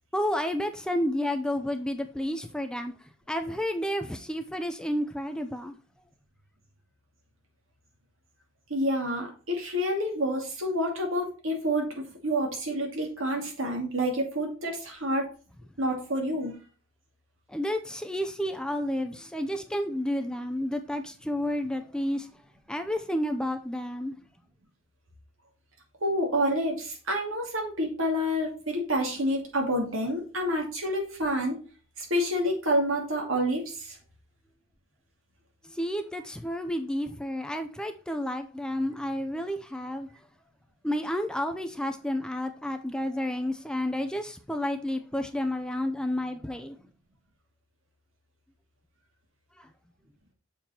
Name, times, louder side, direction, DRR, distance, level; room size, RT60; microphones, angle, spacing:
voice 1, 0.1-2.9 3.3-5.8 17.5-22.3 22.7-24.2 35.6-40.1 40.8-46.8 49.6-49.7, left 1 dB, 5° left, 0.5 m, -31 dB
voice 2, 8.7-15.3 15.8-16.5 26.0-31.6 32.0-34.0, equal, 80° right, 2.4 m, -28 dB
7.0 x 4.4 x 4.3 m
head